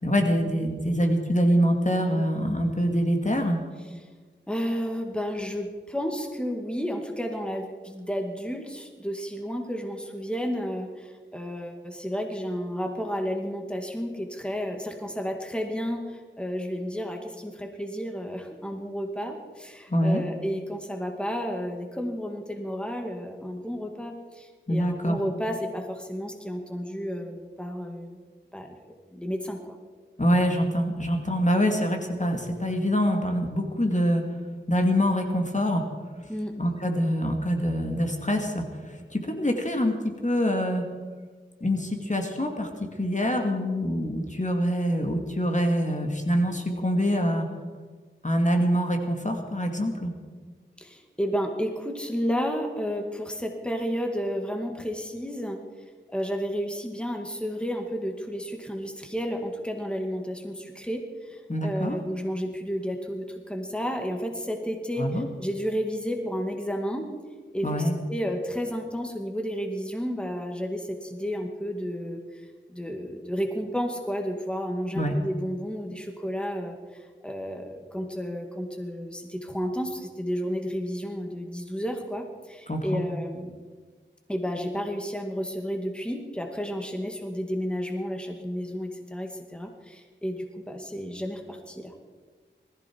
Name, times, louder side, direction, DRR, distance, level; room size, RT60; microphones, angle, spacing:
voice 1, 0.0-3.6 19.9-20.2 24.7-25.2 30.2-34.2 34.7-35.8 36.6-40.8 41.6-47.5 48.2-50.1 61.5-62.0 65.0-65.3 67.6-67.9 74.9-75.2 82.7-83.0, equal, 40° left, 3 dB, 2.3 m, -25 dB
voice 2, 4.5-28.2 28.5-28.8 29.1-29.6 36.3-36.5 50.8-55.6 56.1-67.1 67.5-72.4 72.7-76.8 77.2-83.5 84.3-92.1, equal, 5° left, 3 dB, 2.3 m, -32 dB
20.0 x 15.0 x 4.7 m, 1.4 s
wide cardioid pair, 45°, 20 cm